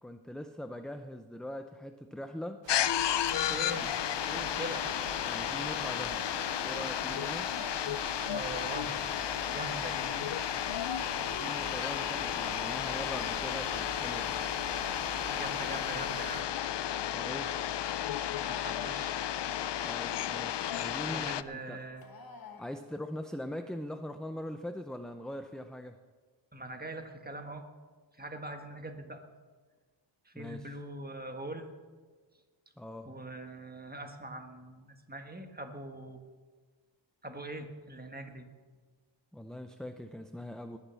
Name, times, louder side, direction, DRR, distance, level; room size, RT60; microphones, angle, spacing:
voice 1, 0.0-2.6 5.3-6.2 6.6-7.5 11.1-14.3 17.1-17.5 19.8-21.8 22.6-26.0 30.3-30.8 32.8-33.1 39.3-40.8, left 1 dB, ahead, 7 dB, 0.5 m, -41 dB
sound 1, 2.6-16.4, right 9 dB, 70° right, 0.7 m, -45 dB
sound 2, 2.7-21.4, left 11 dB, 65° left, 0.5 m, -33 dB
voice 2, 3.5-3.9 4.3-4.9 8.3-8.9 9.5-10.1 15.3-16.4 18.3-19.2 21.1-22.0 26.5-27.6 28.2-29.2 30.2-31.6 33.0-36.2 37.2-38.5, right 1 dB, 20° right, 5 dB, 1.5 m, -42 dB
sound 3, 14.9-22.7, left 4 dB, 50° left, 1.4 m, -51 dB
19.5 x 7.3 x 7.0 m, 1.5 s
wide cardioid pair, 105°, 46 cm